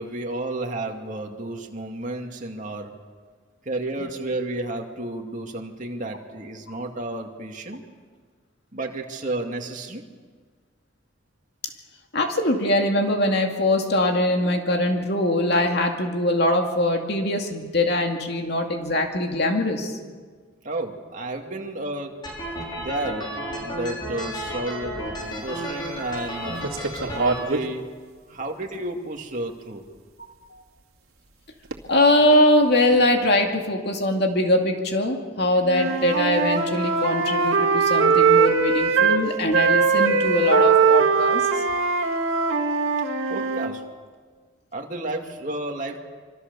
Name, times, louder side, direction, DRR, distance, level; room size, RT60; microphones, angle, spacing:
voice 1, 0.0-2.9 3.6-7.8 8.7-10.0 20.6-22.2 22.8-23.3 23.6-25.0 25.4-26.7 27.1-27.9 28.3-29.9 43.3-43.8 44.7-46.0, right 2 dB, 35° right, 2 dB, 2.5 m, -31 dB
voice 2, 12.1-20.0 30.5-30.6 31.9-41.6, left 1 dB, 50° left, 3 dB, 2.4 m, -22 dB
sound 1, 22.2-27.4, equal, 20° left, 5.8 m, -32 dB
sound 2, 25.2-25.3 25.9-26.1 26.6-27.7 28.4-28.5 29.5-29.6 31.6-31.9 32.2-32.4 32.9-33.0, right 3 dB, 80° right, 2.4 m, -27 dB
Wind instrument woodwind instrument, 35.7-39.2 39.5-43.7, right 5 dB, 65° right, 2.6 m, -20 dB
26.5 x 25.0 x 7.0 m, 1.6 s
head